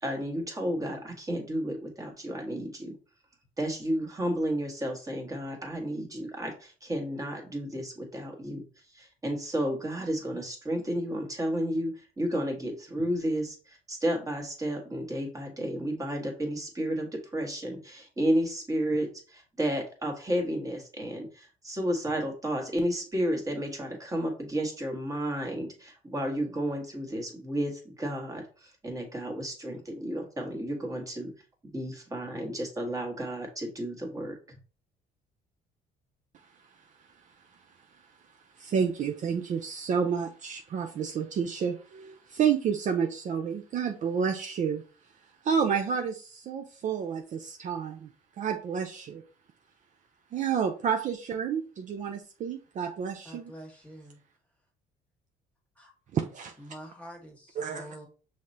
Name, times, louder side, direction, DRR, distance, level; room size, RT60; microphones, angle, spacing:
voice 1, 0.0-2.9 3.6-8.6 8.9-31.3 31.7-34.6, equal, 20° right, 2 dB, 1.4 m, -32 dB
voice 2, 38.6-44.8 45.4-48.1 48.4-49.2 50.3-53.5 56.1-56.5 57.6-57.8, right 7 dB, 45° right, 5 dB, 0.5 m, -30 dB
voice 3, 53.2-54.2 55.7-55.9 56.6-58.1, equal, 10° left, 0 dB, 1.6 m, -46 dB
5.6 x 3.2 x 2.7 m, 0.37 s
cardioid pair, 110°, 17 cm